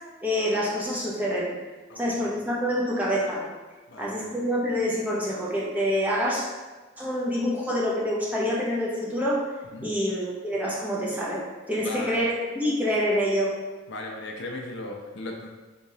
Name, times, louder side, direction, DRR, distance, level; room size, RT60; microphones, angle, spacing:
voice 1, 0.2-1.6 2.0-3.5 4.0-6.5 7.0-9.5 9.8-13.6, equal, 10° right, -5 dB, 0.5 m, -26 dB
voice 2, 1.9-2.3 3.9-4.4 9.7-9.9 11.8-12.3 13.9-15.5, left 2 dB, 55° left, 1 dB, 0.4 m, -37 dB
3.7 x 3.0 x 2.7 m, 1.3 s
head